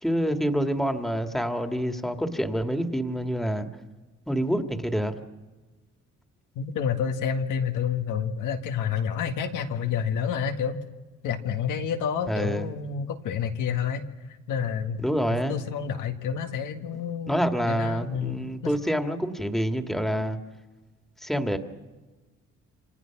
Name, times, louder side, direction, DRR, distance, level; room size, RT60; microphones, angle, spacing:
voice 1, 0.0-3.7 4.3-5.1 12.3-12.7 15.0-15.6 17.3-20.4 21.2-21.6, equal, ahead, 6 dB, 2.0 m, -27 dB
voice 2, 6.6-10.8 11.2-14.0 14.5-15.0 15.3-17.4 17.7-18.7, left 7 dB, 90° left, 5 dB, 1.9 m, -29 dB
28.0 x 24.5 x 6.0 m, 1.2 s
cardioid pair, 90°, 30 cm